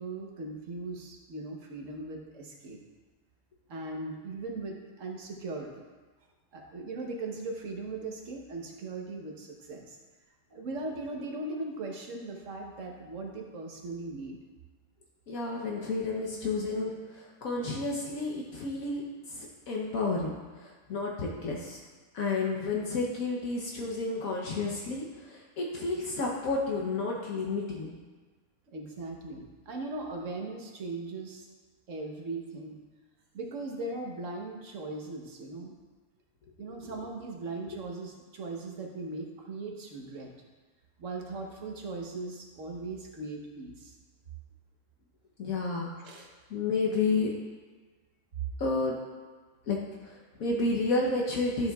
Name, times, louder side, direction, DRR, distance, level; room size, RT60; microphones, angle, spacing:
voice 1, 0.0-2.8 3.7-5.8 6.5-10.0 10.5-14.4 28.7-31.5 31.9-32.8 33.3-35.7 36.6-40.3 41.0-43.9 46.0-46.3 48.4-48.5, right 3 dB, 60° right, 1 dB, 1.3 m, -39 dB
voice 2, 15.3-19.0 19.3-20.3 20.6-21.8 22.1-28.0 45.4-46.2 46.5-47.3 48.6-49.0 49.7-51.7, left 3 dB, 70° left, -2 dB, 1.3 m, -31 dB
12.0 x 7.0 x 2.3 m, 1.3 s
omnidirectional pair, 1.6 m